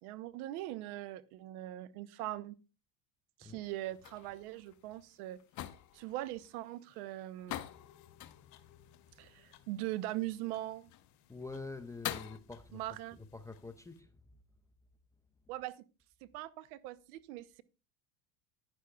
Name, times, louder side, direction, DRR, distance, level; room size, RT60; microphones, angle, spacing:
voice 1, 0.0-2.6 3.4-5.4 5.9-7.6 9.2-10.9 12.7-13.2 15.5-15.8 16.2-17.6, right 15 dB, 75° right, 0.8 m, -41 dB
sound 1, 3.6-12.4, left 13 dB, 40° left, 0.7 m, -47 dB
sound 2, 7.7-14.0, left 10 dB, 65° left, 1.2 m, -65 dB
voice 2, 11.3-14.2, left 3 dB, 10° left, 0.4 m, -47 dB
11.5 x 9.9 x 2.3 m
supercardioid pair, 105°, 44 cm